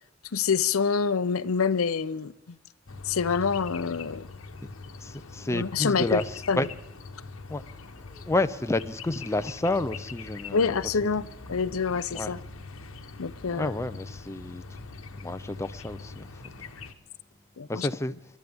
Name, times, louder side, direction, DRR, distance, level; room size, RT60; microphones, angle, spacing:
voice 1, 0.3-2.6 3.0-4.3 5.5-6.7 10.5-11.2 11.5-12.4 13.2-13.7 17.6-17.9, left 5 dB, 90° left, 0.6 m, -26 dB
sound 1, 2.9-16.9, left 3 dB, 70° left, 1.1 m, -43 dB
voice 2, 5.0-6.7 7.5-7.6 8.1-10.6 11.2-11.3 12.1-12.3 13.5-14.6 15.1-16.3 16.6-16.7 17.7-18.1, left 2 dB, 15° left, 0.5 m, -30 dB
29.0 x 12.5 x 3.5 m
head